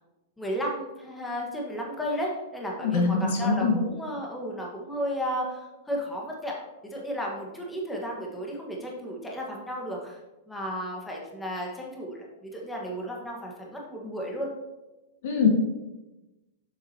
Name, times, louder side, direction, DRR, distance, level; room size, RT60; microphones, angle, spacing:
voice 1, 0.4-6.5 6.8-10.2 10.5-14.5, equal, 10° left, -1 dB, 1.4 m, -33 dB
voice 2, 2.8-3.8 15.2-15.5, left 5 dB, 65° left, 1 dB, 1.7 m, -23 dB
7.4 x 6.5 x 2.9 m, 1.0 s
hypercardioid pair, 120°, 0 cm